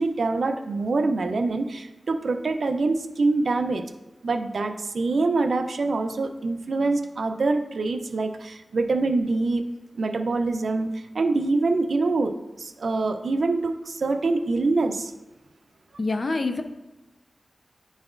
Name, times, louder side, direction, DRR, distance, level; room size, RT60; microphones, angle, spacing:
voice 1, 0.0-3.8 4.2-9.6 10.0-12.3 12.6-15.1, right 3 dB, 75° right, 7 dB, 0.5 m, -25 dB
voice 2, 16.0-16.6, left 3 dB, 55° left, 7 dB, 0.6 m, -25 dB
10.5 x 4.1 x 2.5 m, 1.1 s
cardioid pair, 55°, 0 cm